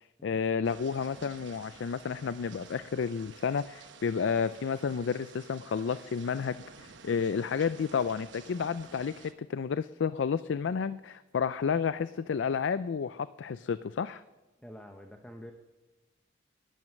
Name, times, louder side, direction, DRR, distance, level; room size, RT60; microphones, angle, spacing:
voice 1, 0.2-14.2, left 6 dB, 75° left, 14 dB, 0.4 m, -31 dB
sound 1, 0.6-9.3, right 5 dB, 75° right, 1.0 m, -52 dB
voice 2, 14.6-15.5, equal, 5° left, 3 dB, 0.8 m, -47 dB
12.0 x 10.5 x 6.5 m, 1.1 s
head